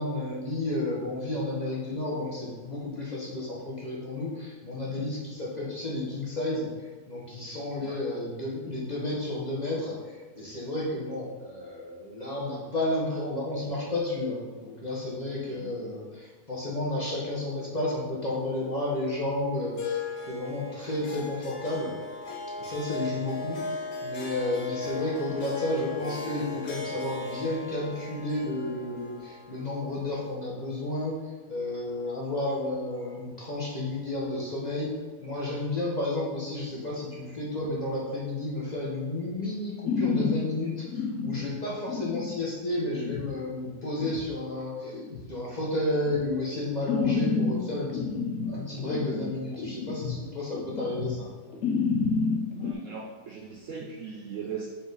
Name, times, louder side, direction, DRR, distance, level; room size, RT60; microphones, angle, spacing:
voice 1, 0.0-6.7 7.1-21.9 22.6-31.2 31.5-34.9 35.2-45.0 45.3-51.3, left 2 dB, 30° left, -5 dB, 1.2 m, -32 dB
voice 2, 15.4-15.7 52.6-54.7, right 6 dB, 60° right, -1 dB, 0.9 m, -39 dB
Harp, 19.8-30.3, left 3 dB, 90° left, 1.7 m, -37 dB
sound 1, 39.9-40.4 40.9-41.4 41.9-42.4 42.8-43.2 43.8-44.2 44.8-45.2 45.9-46.2 46.8-47.6 47.9-50.2 50.5-51.2 51.5-52.7, left 4 dB, 60° left, 0.9 m, -29 dB
7.3 x 4.1 x 4.0 m, 1.3 s
omnidirectional pair, 1.8 m